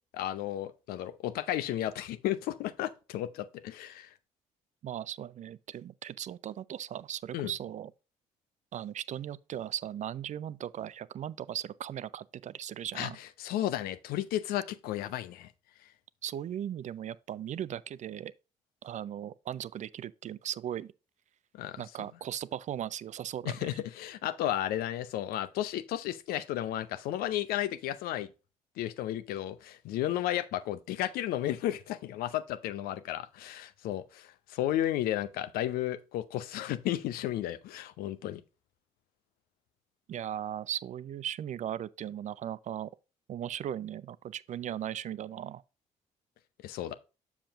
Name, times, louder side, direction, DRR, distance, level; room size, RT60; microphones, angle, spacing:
voice 1, 0.1-4.1 7.3-7.5 12.9-13.1 13.4-15.5 21.5-21.8 23.4-28.3 28.8-38.4 46.6-46.9, left 13 dB, 65° left, 0.6 m, -33 dB
voice 2, 4.8-7.9 8.7-13.2 16.2-18.3 18.8-20.9 21.8-23.6 40.1-42.9 43.3-45.6, right 10 dB, 45° right, 0.5 m, -38 dB
7.2 x 7.1 x 2.5 m
figure-of-eight pair, 45°, 17 cm